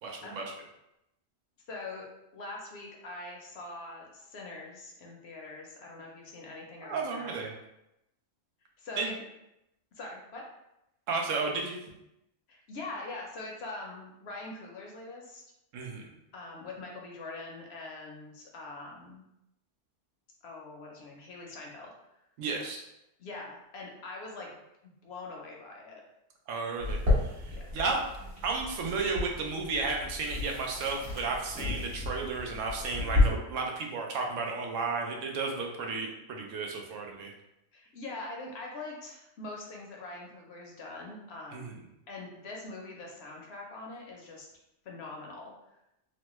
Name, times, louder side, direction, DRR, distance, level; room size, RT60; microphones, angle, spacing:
voice 1, 0.0-0.5 6.8-7.5 9.0-9.1 11.1-11.8 15.7-16.0 22.4-22.8 26.5-28.0 28.4-37.3 41.5-41.8, right 4 dB, 85° right, 1 dB, 1.0 m, -33 dB
voice 2, 1.7-2.1 2.3-7.4 8.8-9.2 9.9-10.4 12.5-15.4 16.3-19.2 20.4-21.9 23.2-24.6 25.0-26.0 27.5-27.6 37.7-41.6 42.1-44.5 44.8-45.5, left 2 dB, 65° left, -1 dB, 0.8 m, -43 dB
sound 1, 26.8-33.2, left 3 dB, 50° right, 1.2 m, -32 dB
3.0 x 2.1 x 2.9 m, 0.86 s
omnidirectional pair, 1.3 m